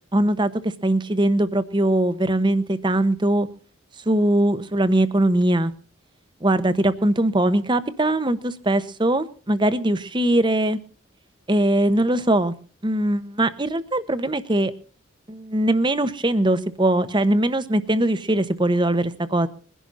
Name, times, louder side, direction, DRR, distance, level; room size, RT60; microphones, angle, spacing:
voice 1, 0.1-3.5 4.1-5.7 6.4-10.8 11.5-12.5 12.8-14.7 15.3-19.5, right 1 dB, 25° right, 13 dB, 0.9 m, -21 dB
22.0 x 11.0 x 4.1 m, 0.41 s
head